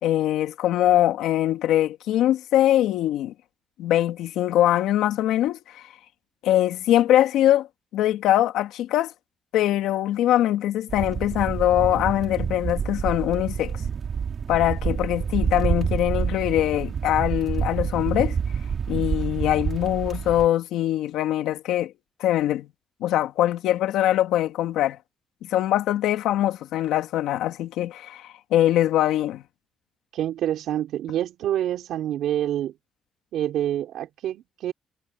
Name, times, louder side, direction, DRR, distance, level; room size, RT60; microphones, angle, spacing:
voice 1, 0.0-3.3 3.8-5.9 6.4-7.7 7.9-9.1 9.5-13.7 14.5-18.4 18.9-21.9 22.2-22.7 23.0-25.0 25.4-29.4, left 13 dB, 90° left, 2.7 m, -22 dB
sound 1, 10.9-20.5, right 6 dB, 50° right, 5.2 m, -28 dB
voice 2, 30.1-32.7 33.3-34.7, right 11 dB, 80° right, 4.6 m, -27 dB
cardioid pair, 90°, 0 cm